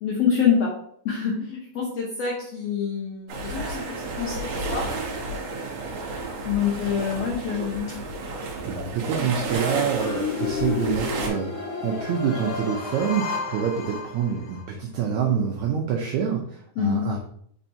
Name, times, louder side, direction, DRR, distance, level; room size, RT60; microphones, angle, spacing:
voice 1, 0.0-0.7 1.0-4.9 6.4-7.9 16.8-17.1, left 7 dB, 85° left, -3 dB, 1.4 m, -26 dB
sound 1, 3.3-11.3, right 3 dB, 70° right, 1.5 m, -32 dB
voice 2, 8.6-17.2, right 7 dB, 90° right, 0 dB, 1.6 m, -26 dB
sound 2, 10.0-14.6, left 5 dB, 50° left, 1.5 m, -31 dB
4.5 x 4.3 x 2.7 m, 0.65 s
omnidirectional pair, 3.9 m